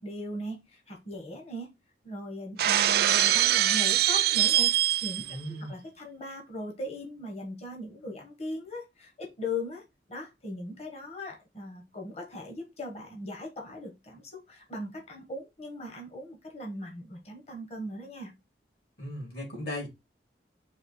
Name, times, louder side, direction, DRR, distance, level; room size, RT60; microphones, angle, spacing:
voice 1, 0.0-1.7 2.0-9.8 10.1-18.3, left 1 dB, 35° left, 1.0 m, -39 dB
Shatter, 2.6-5.4, right 12 dB, 55° right, 0.3 m, -23 dB
voice 2, 5.3-5.7 19.0-19.9, left 1 dB, 65° left, 2.5 m, -37 dB
4.2 x 2.8 x 4.0 m
head